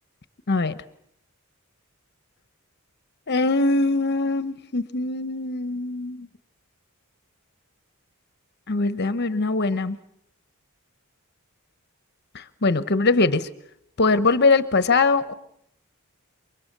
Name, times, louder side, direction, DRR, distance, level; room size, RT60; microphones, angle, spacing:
voice 1, 0.5-0.8 3.3-6.3 8.7-10.0 12.3-13.5 14.0-15.3, left 3 dB, 50° left, 13 dB, 1.0 m, -22 dB
29.0 x 24.0 x 6.7 m, 0.72 s
head